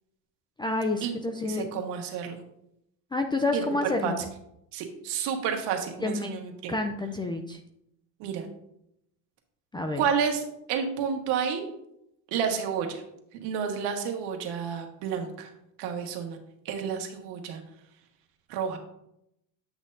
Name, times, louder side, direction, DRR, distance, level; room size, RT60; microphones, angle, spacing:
voice 1, 0.6-1.7 3.1-4.2 6.0-6.4 6.7-7.6 9.7-10.0, left 2 dB, 10° left, 5 dB, 0.5 m, -29 dB
voice 2, 1.4-2.4 3.5-3.6 4.0-4.2 4.7-6.7 8.2-8.5 9.9-11.6 12.3-13.0 13.4-15.5 15.8-16.4 16.6-17.6 18.5-18.8, right 7 dB, 80° right, 3 dB, 1.6 m, -30 dB
9.5 x 6.3 x 2.7 m, 0.78 s
cardioid pair, 125°, 40 cm